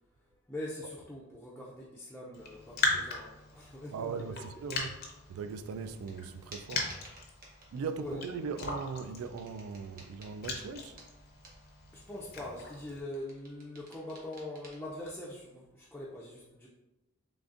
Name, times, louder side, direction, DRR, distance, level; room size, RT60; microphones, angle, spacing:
voice 1, 0.5-4.4 8.0-8.2 11.9-16.7, left 1 dB, 5° left, 0.4 m, -43 dB
Raindrop, 2.3-13.0, left 3 dB, 50° left, 0.6 m, -39 dB
voice 2, 3.9-5.0 5.3-6.9 7.7-11.0, right 5 dB, 90° right, 0.3 m, -39 dB
sound 1, 6.1-6.2 6.5-7.8 9.0-11.7 13.1-14.8, right 2 dB, 45° right, 0.9 m, -54 dB
3.8 x 3.3 x 2.4 m
head